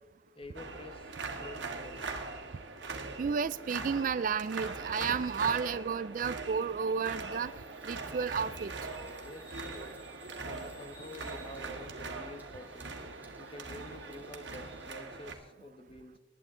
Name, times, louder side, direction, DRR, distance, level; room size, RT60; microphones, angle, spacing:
voice 1, 0.3-1.1 1.4-2.1 9.2-9.7 10.4-12.9 13.4-16.2, left 1 dB, 30° left, 7 dB, 1.2 m, -48 dB
sound 1, 0.5-15.3, right 3 dB, 75° right, 1.8 m, -41 dB
voice 2, 3.2-7.5 7.8-8.7, right 6 dB, 45° right, 17 dB, 0.3 m, -32 dB
Bird vocalization bird call bird song, 7.4-14.9, right 1 dB, 10° right, 1.7 m, -58 dB
19.5 x 10.5 x 3.7 m, 1.2 s
head